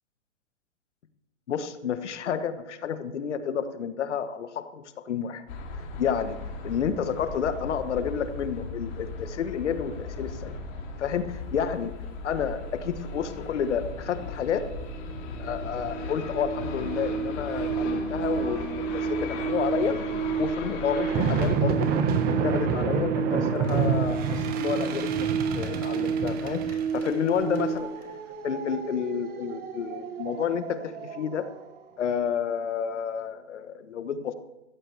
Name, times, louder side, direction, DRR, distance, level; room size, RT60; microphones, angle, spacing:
voice 1, 1.5-5.4 6.0-6.4 6.6-10.6 11.0-12.0 12.2-14.7 15.4-20.0 20.4-21.9 22.4-27.9 28.4-31.5 32.0-34.3, left 7 dB, 65° left, 11 dB, 1.3 m, -30 dB
sound 1, 5.5-21.6, left 3 dB, 40° left, 3.2 m, -37 dB
sound 2, 14.2-14.3 14.6-27.8, right 6 dB, 45° right, 2.2 m, -31 dB
sound 3, 21.0-31.5, right 6 dB, 25° right, 1.4 m, -29 dB
16.0 x 14.0 x 3.4 m, 0.96 s
hypercardioid pair, 135°, 37 cm